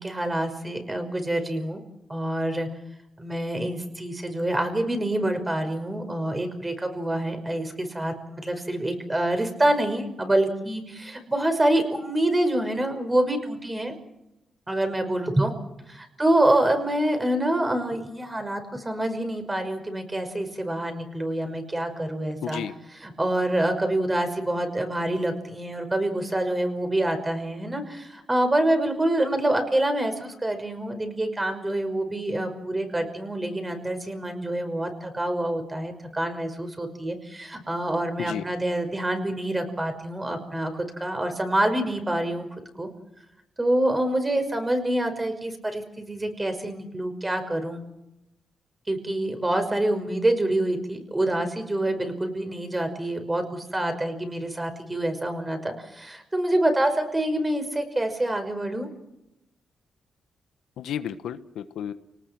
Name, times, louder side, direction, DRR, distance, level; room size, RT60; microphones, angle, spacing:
voice 1, 0.0-1.8 2.1-2.7 3.2-13.9 14.7-15.5 15.9-22.6 23.0-42.5 42.8-42.9 43.6-47.8 48.9-58.9, right 1 dB, 20° right, 7 dB, 5.6 m, -26 dB
voice 2, 22.4-22.7 38.2-38.4 60.8-61.9, left 9 dB, 90° left, 11 dB, 1.3 m, -32 dB
29.5 x 19.0 x 6.1 m, 0.89 s
cardioid pair, 85°, 0 cm